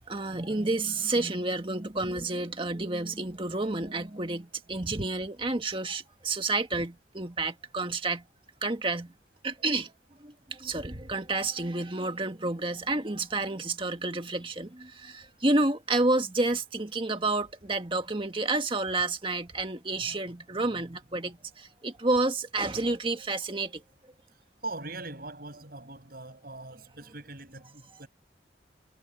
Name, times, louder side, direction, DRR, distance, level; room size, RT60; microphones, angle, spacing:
voice 1, 0.0-8.2 8.6-9.1 9.4-9.9 10.2-23.8, right 2 dB, 30° right, 1.8 m, -30 dB
voice 2, 24.6-28.1, right 2 dB, 55° right, 7.8 m, -41 dB
head